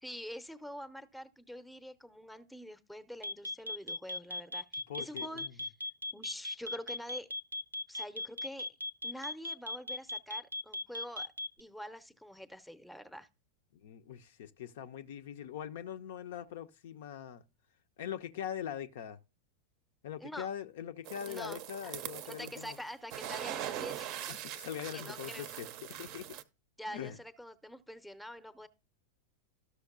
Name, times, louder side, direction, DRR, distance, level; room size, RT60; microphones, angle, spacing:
voice 1, 0.0-5.7 6.1-7.3 7.9-8.7 9.0-11.3 11.6-13.3 20.2-20.5 21.3-21.9 22.3-24.2 24.9-25.5 26.8-28.7, equal, ahead, 0.7 m, -46 dB
sound 1, 3.2-11.6, left 2 dB, 85° right, 0.4 m, -37 dB
voice 2, 4.9-5.6 13.7-17.4 18.0-19.2 20.0-22.8 24.3-25.7 26.0-26.3 26.9-27.2, left 9 dB, 55° left, 0.5 m, -42 dB
sound 2, 21.1-22.8 23.1-26.4, right 11 dB, 40° right, 0.6 m, -42 dB
13.0 x 6.4 x 2.3 m
figure-of-eight pair, 90°, 0 cm